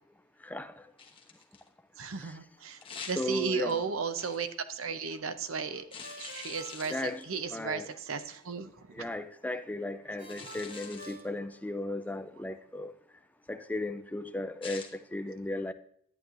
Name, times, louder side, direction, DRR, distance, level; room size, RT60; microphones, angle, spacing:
voice 1, 0.4-0.7 2.2-2.3 3.2-3.8 6.9-7.9 8.9-12.9 13.5-15.7, left 2 dB, 10° left, 0.4 m, -36 dB
sound 1, 1.0-1.7 2.8-3.7 4.2-4.5 5.9-7.4 8.2-8.4 10.2-11.3 14.6-14.9, left 5 dB, 25° left, 1.0 m, -45 dB
voice 2, 2.0-2.8 3.0-5.9 6.2-9.1 10.4-10.5, right 5 dB, 85° right, 0.7 m, -35 dB
Ringtone, 6.0-8.0 10.2-12.1, right 2 dB, 60° right, 3.0 m, -50 dB
11.0 x 9.1 x 2.5 m
head